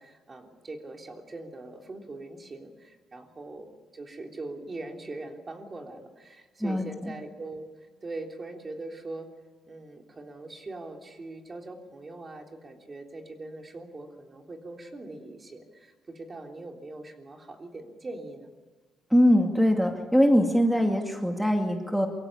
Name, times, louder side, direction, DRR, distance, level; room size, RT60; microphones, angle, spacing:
voice 1, 0.0-3.7 3.9-7.6 8.0-9.3 9.7-18.5, right 2 dB, 30° right, 3 dB, 3.4 m, -41 dB
voice 2, 6.6-7.1 19.1-22.1, equal, ahead, 3 dB, 2.4 m, -22 dB
24.0 x 16.5 x 9.9 m, 1.4 s
cardioid pair, 90°, 0 cm